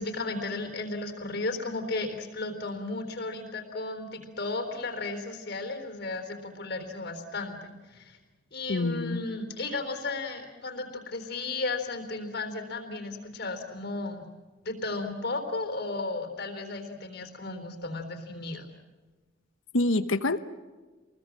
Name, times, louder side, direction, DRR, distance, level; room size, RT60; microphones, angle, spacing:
voice 1, 0.0-8.2 8.5-14.3 14.6-18.7, left 3 dB, 55° left, 3.9 m, -34 dB
voice 2, 8.7-9.2 19.7-20.4, left 2 dB, 80° left, 1.2 m, -26 dB
28.0 x 21.5 x 7.5 m
head